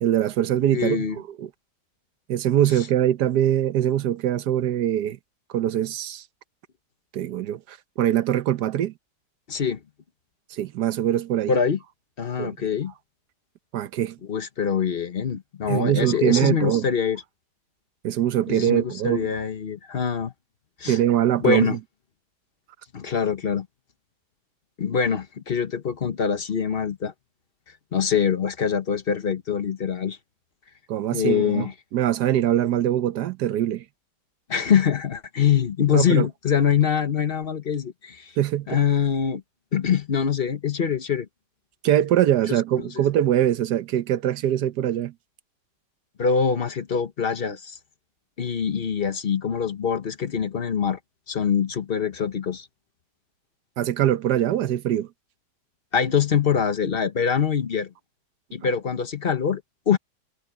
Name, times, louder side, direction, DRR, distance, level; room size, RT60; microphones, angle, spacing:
voice 1, 0.0-1.5 2.3-5.2 5.5-6.2 7.1-8.9 10.5-11.5 12.4-12.6 13.7-14.2 15.7-16.9 18.0-19.3 20.9-21.8 30.9-33.8 35.9-36.3 38.4-38.8 41.8-45.1 53.8-55.1, right 11 dB, 75° right, 1.4 m, -23 dB
voice 2, 0.7-1.2 9.5-9.8 11.5-11.8 12.2-12.9 14.3-17.2 18.5-20.3 20.8-21.0 21.4-21.8 22.9-23.7 24.8-27.1 27.9-30.2 31.1-31.7 34.5-38.3 38.7-39.4 39.7-41.3 42.5-42.9 46.2-47.8 48.4-51.0 51.3-52.7 55.9-57.9 58.5-59.6 59.9-60.0, left 7 dB, 40° left, 1.0 m, -24 dB
omnidirectional pair, 1.8 m